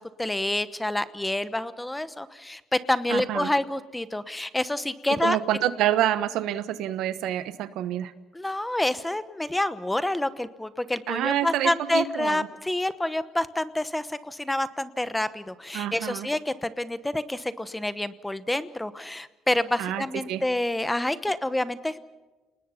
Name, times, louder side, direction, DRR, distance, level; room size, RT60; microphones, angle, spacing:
voice 1, 0.0-5.4 8.3-22.0, left 1 dB, 10° left, 14 dB, 1.0 m, -28 dB
voice 2, 3.1-3.5 5.2-8.1 11.1-12.5 15.7-16.3 19.8-20.4, right 12 dB, 85° right, 13 dB, 1.2 m, -27 dB
29.5 x 20.0 x 5.8 m, 1.2 s
cardioid pair, 115°, 0 cm